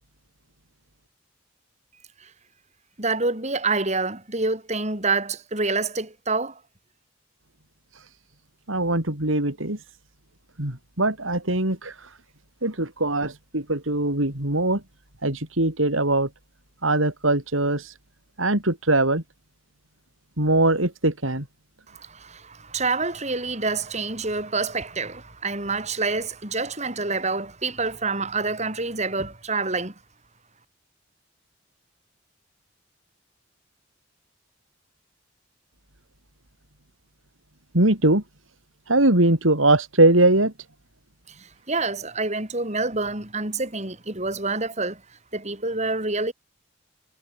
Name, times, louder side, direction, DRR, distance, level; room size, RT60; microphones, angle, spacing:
voice 1, 3.0-6.6 21.9-29.9 41.3-45.0 45.3-46.3, right 3 dB, 35° right, 6.1 m, -27 dB
voice 2, 8.7-9.8 10.6-12.2 12.6-14.8 15.2-16.3 16.8-17.9 18.4-19.2 20.4-21.5 37.7-38.2 38.9-40.5, right 2 dB, 85° right, 4.7 m, -21 dB
head